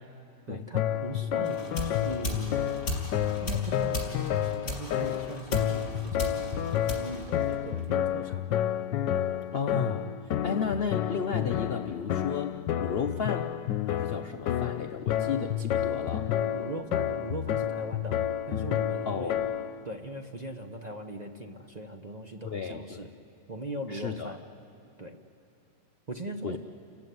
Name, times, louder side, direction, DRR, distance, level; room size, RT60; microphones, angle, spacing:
voice 1, 0.5-2.9 3.4-8.6 16.5-18.2 18.5-19.4 19.8-23.1 23.5-24.4 25.0-25.2 26.1-26.6, right 1 dB, 30° right, 4 dB, 0.8 m, -40 dB
sound 1, 0.7-19.8, left 10 dB, 85° left, 1.4 m, -30 dB
sound 2, 1.4-8.0, left 1 dB, 40° left, 4.2 m, -37 dB
voice 2, 9.5-13.5 13.9-16.3 19.1-19.5 22.4-23.1 23.9-24.4 26.4-26.6, left 6 dB, 60° left, 7 dB, 0.6 m, -33 dB
29.5 x 15.0 x 9.3 m, 3.0 s
omnidirectional pair, 1.9 m